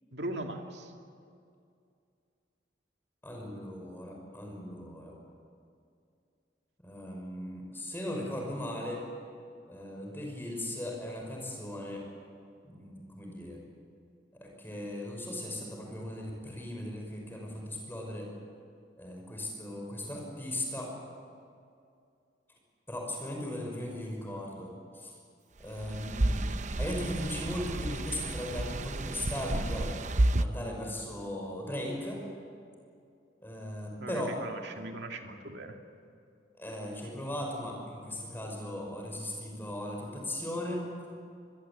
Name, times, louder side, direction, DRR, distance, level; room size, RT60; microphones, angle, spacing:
voice 1, 0.1-0.9 34.0-35.8, right 1 dB, 70° right, 3 dB, 2.5 m, -39 dB
voice 2, 3.2-5.1 6.8-9.0 9.7-12.0 12.6-13.6 14.3-18.3 19.0-20.9 22.9-25.1 25.6-26.5 26.8-29.9 30.4-32.2 33.4-34.4 34.7-34.8 36.6-40.8, left 1 dB, 10° left, 0 dB, 5.8 m, -38 dB
sound 1, 25.7-30.4, right 1 dB, 40° right, 0.7 m, -31 dB
25.0 x 21.5 x 8.7 m, 2.4 s
head